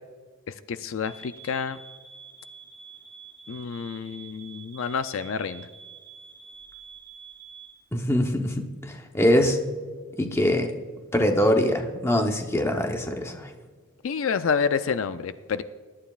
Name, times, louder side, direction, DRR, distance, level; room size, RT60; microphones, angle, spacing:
voice 1, 0.7-1.8 3.5-5.7 14.0-15.6, left 6 dB, 65° left, 12 dB, 0.4 m, -28 dB
sound 1, 1.0-7.8, right 6 dB, 30° right, 2.2 m, -47 dB
voice 2, 7.9-9.6 10.2-10.7 11.1-13.5, left 1 dB, 10° left, 4 dB, 0.8 m, -23 dB
21.0 x 11.5 x 2.4 m, 1.5 s
head